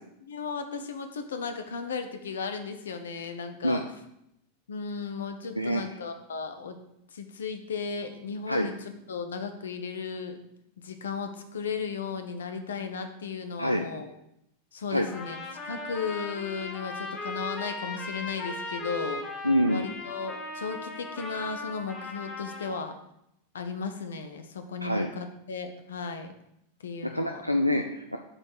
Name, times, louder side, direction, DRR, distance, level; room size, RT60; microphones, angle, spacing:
voice 1, 0.3-3.8 4.7-6.8 7.1-10.4 10.8-14.1 14.7-15.4 15.6-19.2 19.7-22.9 23.5-26.3 26.8-27.4, left 5 dB, 65° left, 7 dB, 1.0 m, -35 dB
Trumpet, 15.1-22.8, left 2 dB, 30° left, 1.9 m, -38 dB
voice 2, 19.4-19.8 24.8-25.1 27.0-28.2, equal, 90° left, 3 dB, 0.5 m, -26 dB
7.6 x 4.4 x 6.7 m, 0.78 s
figure-of-eight pair, 90°, 0 cm